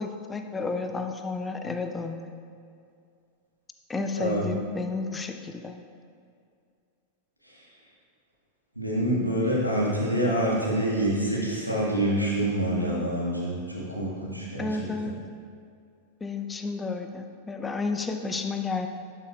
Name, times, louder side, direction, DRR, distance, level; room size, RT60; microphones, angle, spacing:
voice 1, 0.0-2.3 3.9-5.8 14.6-15.2 16.2-18.9, left 3 dB, 15° left, 6 dB, 0.5 m, -31 dB
voice 2, 8.8-14.7, right 1 dB, 90° right, -6 dB, 1.7 m, -26 dB
11.5 x 5.8 x 2.4 m, 2.3 s
figure-of-eight pair, 90°, 0 cm